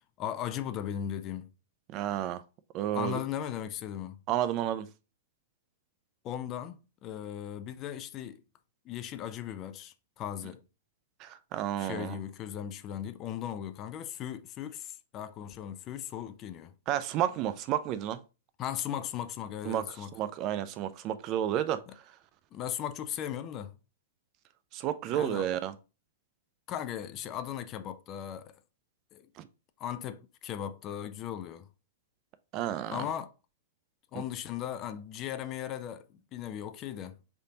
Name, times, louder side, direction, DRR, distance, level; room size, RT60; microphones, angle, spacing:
voice 1, 0.2-1.5 2.9-4.2 6.2-8.4 8.9-10.6 11.8-16.7 18.6-20.1 22.5-23.7 25.1-25.5 26.7-28.5 29.1-29.2 29.8-31.7 32.9-33.3 34.1-37.2, left 10 dB, 35° left, 0.4 m, -37 dB
voice 2, 1.9-2.4 2.7-3.2 4.3-4.9 11.2-12.2 16.9-18.2 19.7-19.8 20.1-21.8 24.7-25.7 29.4-29.5 32.5-33.0, right 11 dB, 40° right, 0.4 m, -31 dB
3.8 x 3.5 x 2.8 m
hypercardioid pair, 115°, 0 cm